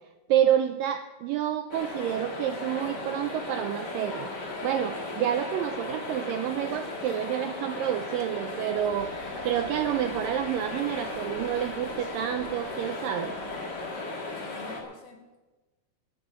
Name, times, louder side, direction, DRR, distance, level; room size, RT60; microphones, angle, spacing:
voice 1, 0.3-4.3 4.6-13.4, right 11 dB, 85° right, 8 dB, 2.0 m, -29 dB
Large crowd from above stereo, 1.7-14.8, left 2 dB, 35° left, 2.0 m, -36 dB
sound 1, 8.8-13.9, right 2 dB, 55° right, 3.4 m, -50 dB
voice 2, 14.3-15.5, left 3 dB, 70° left, 4 dB, 2.1 m, -48 dB
14.0 x 7.0 x 8.8 m, 1.2 s
omnidirectional pair, 4.5 m